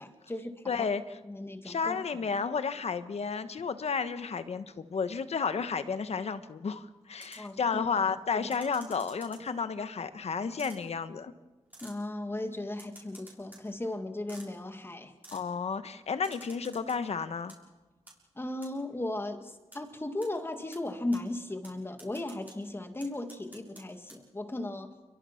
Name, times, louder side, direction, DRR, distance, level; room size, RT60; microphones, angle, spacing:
voice 1, 0.0-0.9 1.2-2.0 7.4-7.6 8.3-8.5 11.8-15.1 18.4-24.9, left 1 dB, 20° left, 6 dB, 1.9 m, -36 dB
voice 2, 0.7-1.2 1.6-11.3 15.3-17.5, left 5 dB, 65° left, 11 dB, 1.2 m, -32 dB
sound 1, 7.2-7.5 8.5-9.6 10.6-10.8 11.7-12.0 12.7-13.6 14.3-14.5 15.2-15.4 16.2-17.0 17.3-17.6 18.1-18.2 18.6-18.7 19.7-19.8 20.2-20.3 20.7-20.8 21.1-21.2 21.6-21.7 22.0-22.6 23.0-23.8 24.1-24.2, right 2 dB, 15° right, 6.7 m, -51 dB
29.5 x 22.5 x 5.9 m, 1.2 s
wide cardioid pair, 155°, 12 cm